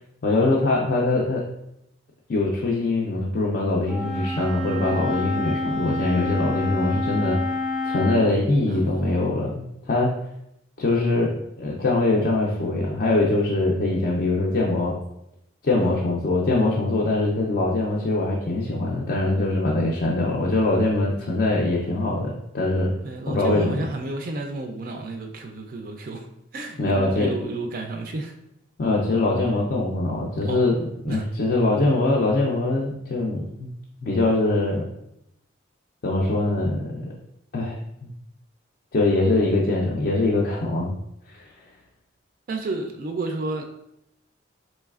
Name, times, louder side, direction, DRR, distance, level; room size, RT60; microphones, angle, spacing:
voice 1, 0.2-1.4 2.3-7.6 7.8-10.1 10.8-11.3 11.6-14.9 15.6-22.9 23.3-23.9 26.8-27.3 28.8-30.7 31.0-33.7 34.0-34.9 36.0-37.0 37.5-38.1 38.9-40.9 41.3-41.5, left 2 dB, 50° left, -3 dB, 0.4 m, -23 dB
Wind instrument woodwind instrument, 3.8-8.3, left 2 dB, ahead, 0.7 m, -28 dB
voice 2, 8.7-9.2 15.8-16.0 22.8-26.3 26.5-28.4 30.5-30.6 31.1-31.2 42.5-43.6, right 2 dB, 45° right, 4 dB, 0.3 m, -32 dB
4.0 x 3.1 x 2.3 m, 0.81 s
head